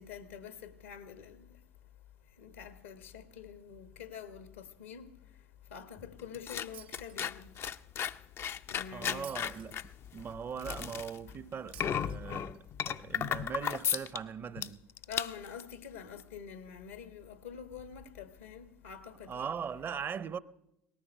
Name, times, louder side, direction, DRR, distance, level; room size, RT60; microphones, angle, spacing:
voice 1, 0.0-1.5 2.4-5.1 5.7-7.5 8.7-9.4 15.1-19.5, left 7 dB, 80° left, 1.3 m, -46 dB
sound 1, 6.0-14.2 14.6-14.7 15.0-15.6 16.2-16.3, left 9 dB, 40° left, 0.5 m, -35 dB
Shatter, 6.7-7.7 9.2-10.2 11.7-12.7, right 12 dB, 75° right, 0.5 m, -54 dB
voice 2, 8.9-14.9 19.3-20.4, right 7 dB, 35° right, 0.7 m, -40 dB
18.5 x 13.5 x 5.4 m
figure-of-eight pair, 65°, 6 cm